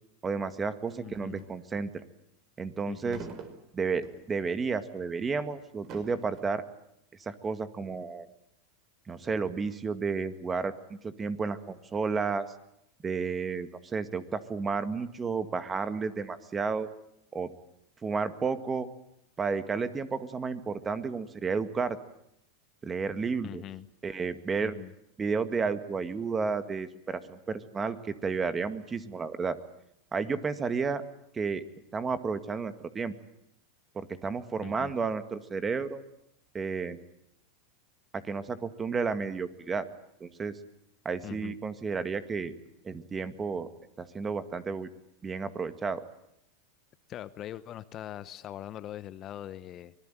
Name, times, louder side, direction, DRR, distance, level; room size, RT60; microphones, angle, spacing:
voice 1, 0.2-1.9 2.6-3.2 3.7-6.6 7.2-8.3 9.1-10.7 11.0-12.5 13.0-16.9 17.3-17.5 18.0-18.9 19.4-22.0 22.8-23.6 24.0-24.8 25.2-29.6 30.1-31.0 31.3-31.6 31.9-33.1 33.9-36.0 36.5-37.0 38.1-39.9 40.2-40.6 41.1-42.5 42.8-43.7 44.0-44.9 45.2-46.0, right 5 dB, 20° right, 12 dB, 1.9 m, -32 dB
sound 1, 0.9-1.6 3.1-4.3 4.8-5.0 5.6-6.4, right 5 dB, 45° right, 4.5 m, -46 dB
voice 2, 1.0-1.4 2.9-3.3 23.4-23.9 24.6-24.9 34.6-34.9 41.2-41.5 47.1-49.9, left 12 dB, 35° left, 15 dB, 1.0 m, -42 dB
25.0 x 20.0 x 9.1 m, 0.80 s
supercardioid pair, 120°, 0 cm